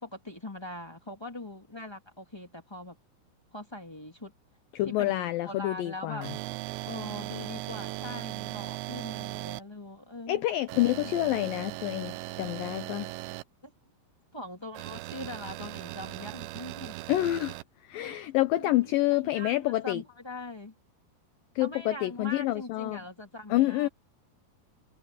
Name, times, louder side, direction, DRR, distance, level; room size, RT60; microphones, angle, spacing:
voice 1, 0.0-2.9 3.5-4.3 4.8-6.3 6.8-10.4 13.6-13.7 14.3-17.0 18.0-18.2 18.5-18.9 19.2-20.7 21.6-23.9, left 1 dB, 30° left, 0.4 m, -42 dB
voice 2, 4.7-6.3 10.3-13.1 17.1-17.6 17.8-20.0 21.6-23.0 23.5-23.9, left 16 dB, 80° left, 2.1 m, -28 dB
sound 1, 6.2-9.6 10.7-13.4 14.8-17.6, right 19 dB, 90° right, 2.9 m, -38 dB
omnidirectional pair, 4.8 m